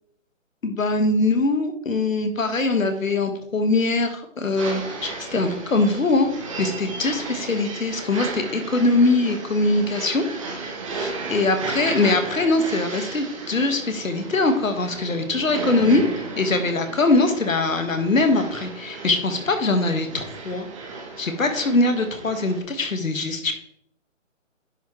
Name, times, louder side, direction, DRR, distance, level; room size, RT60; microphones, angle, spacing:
voice 1, 0.6-6.3 6.6-10.2 10.9-16.0 16.4-20.6 21.2-23.5, left 2 dB, 85° left, 7 dB, 1.5 m, -22 dB
sound 1, 4.6-22.6, right 3 dB, 25° right, 1.1 m, -34 dB
10.0 x 5.8 x 3.1 m, 0.72 s
hypercardioid pair, 160°, 39 cm